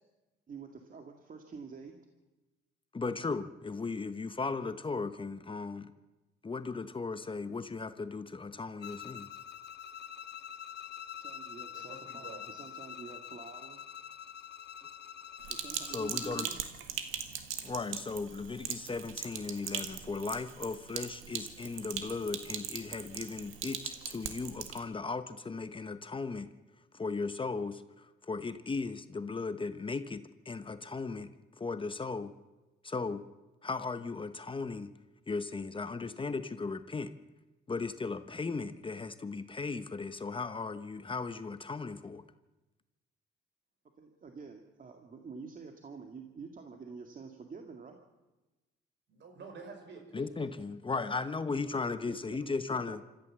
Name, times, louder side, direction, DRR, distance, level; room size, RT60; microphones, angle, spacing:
voice 1, 0.5-2.0 11.2-13.8 15.5-16.6 44.0-48.0 52.1-52.4 52.7-53.1, right 5 dB, 45° right, 4 dB, 2.1 m, -48 dB
voice 2, 2.9-5.9 6.4-9.3 15.9-16.5 17.6-26.5 26.9-32.3 32.8-33.2 33.6-34.9 35.3-37.1 37.7-42.2 50.1-53.0, left 4 dB, 25° left, 11 dB, 1.1 m, -37 dB
Bowed string instrument, 8.8-16.6, left 9 dB, 55° left, 1.0 m, -45 dB
voice 3, 11.7-12.4 49.1-50.5 50.9-51.0, right 4 dB, 60° right, 4 dB, 5.7 m, -49 dB
Sink (filling or washing), 15.4-24.8, right 9 dB, 85° right, 1.9 m, -40 dB
26.5 x 14.0 x 7.5 m, 1.1 s
cardioid pair, 90°, 20 cm